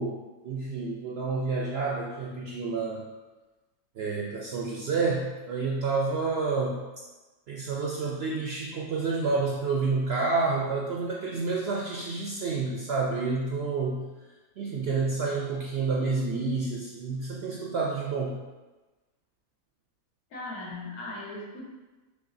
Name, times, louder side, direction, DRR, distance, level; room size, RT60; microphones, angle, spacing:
voice 1, 0.0-3.1 4.0-6.8 7.5-14.1 14.6-18.4, right 4 dB, 70° right, -2 dB, 0.6 m, -29 dB
voice 2, 20.3-21.7, left 2 dB, 80° left, -3 dB, 1.5 m, -38 dB
6.1 x 3.3 x 2.6 m, 1.2 s
omnidirectional pair, 1.5 m